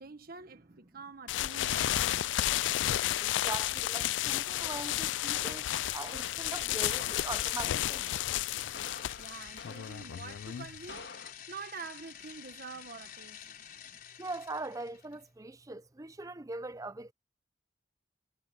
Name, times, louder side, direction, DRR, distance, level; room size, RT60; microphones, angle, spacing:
voice 1, 0.0-2.7 9.2-13.6, right 4 dB, 55° right, 1.3 m, -47 dB
sound 1, 1.3-10.9, left 13 dB, 85° left, 0.3 m, -32 dB
sound 2, 2.6-15.2, left 9 dB, 55° left, 4.5 m, -50 dB
voice 2, 3.2-5.7 5.9-8.1 14.2-17.1, right 2 dB, 20° right, 0.6 m, -41 dB
sound 3, 6.1-7.8 8.7-10.2 10.9-11.3, left 4 dB, 70° left, 1.9 m, -49 dB
head